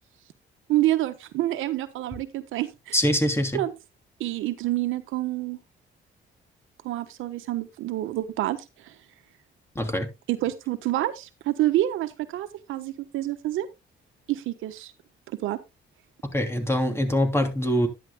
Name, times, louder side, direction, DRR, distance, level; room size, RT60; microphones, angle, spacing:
voice 1, 0.7-3.0 3.5-3.7 4.2-5.6 6.8-8.9 10.3-13.7 14.3-14.9 15.4-15.6, right 15 dB, 90° right, 1.2 m, -27 dB
voice 2, 2.9-3.6 9.7-10.1 16.3-17.9, equal, 10° left, 3.0 m, -24 dB
11.0 x 11.0 x 2.2 m
cardioid pair, 90°, 20 cm